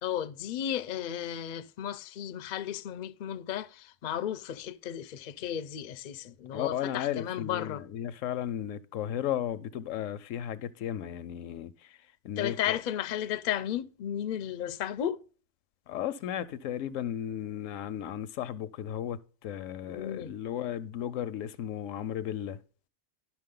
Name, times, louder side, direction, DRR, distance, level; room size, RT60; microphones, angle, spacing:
voice 1, 0.0-7.8 12.4-15.2 19.9-20.3, left 10 dB, 60° left, 0.5 m, -34 dB
voice 2, 6.5-12.0 12.2-12.8 15.9-22.6, left 10 dB, 85° left, 1.0 m, -35 dB
11.5 x 6.0 x 3.7 m
omnidirectional pair, 1.3 m